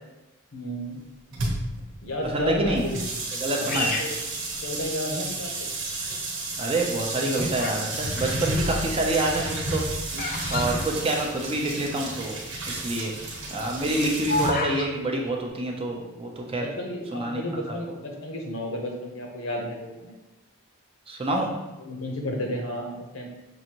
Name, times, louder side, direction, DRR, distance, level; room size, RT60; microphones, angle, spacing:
voice 1, 0.5-1.0 2.0-3.0 3.5-4.1 4.6-5.5 10.6-10.9 16.4-20.1 21.8-23.3, left 1 dB, 65° left, 1 dB, 0.8 m, -32 dB
sound 1, 1.3-14.5, right 2 dB, 60° right, 1.0 m, -31 dB
voice 2, 2.2-2.8 3.4-3.9 6.6-9.8 10.5-12.4 12.7-13.1 13.5-16.7 17.1-17.4 17.7-18.0 21.1-21.5, right 2 dB, 25° right, 0 dB, 0.5 m, -27 dB
Bird vocalization bird call bird song, 3.7-5.2 5.8-6.3 7.0-7.9 8.2-11.7 12.0-12.1 12.2-12.6 13.0-14.9, left 2 dB, 40° left, 0.4 m, -31 dB
6.2 x 2.6 x 2.9 m, 1.0 s
head